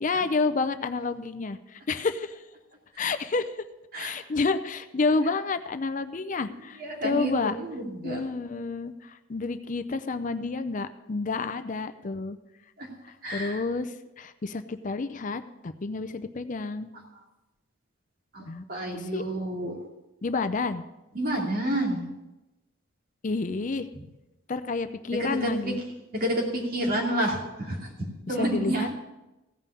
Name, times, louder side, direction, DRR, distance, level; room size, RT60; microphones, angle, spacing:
voice 1, 0.0-2.4 3.0-3.5 4.0-7.6 8.0-12.4 13.3-16.9 18.5-18.6 18.9-19.2 20.2-20.8 23.2-23.9 24.5-25.8 28.3-28.9, left 3 dB, 40° left, 11 dB, 0.5 m, -29 dB
voice 2, 6.8-8.2 12.8-12.9 13.2-13.6 18.3-19.8 21.1-22.1 25.2-25.7 26.1-28.9, right 1 dB, 50° right, 0 dB, 2.6 m, -29 dB
15.5 x 5.5 x 8.4 m, 1.0 s
head